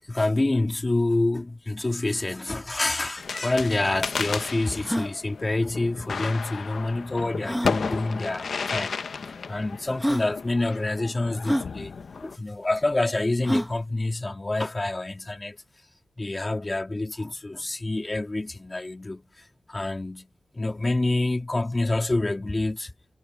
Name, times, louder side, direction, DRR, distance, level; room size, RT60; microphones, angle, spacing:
voice 1, 0.1-15.6 16.2-20.3 20.5-22.9, left 2 dB, 30° left, 2.9 m, -27 dB
sound 1, 3.2-12.4, left 5 dB, 80° left, 1.0 m, -33 dB
sound 2, 3.3-3.4 3.5-3.6 4.2-4.3 4.8-5.1 6.5-6.6 7.4-7.8 8.7-8.8 9.6-9.7 10.0-10.3 11.4-11.7 13.4-13.8, equal, ahead, 2.0 m, -27 dB
wide cardioid pair, 80°, 0 cm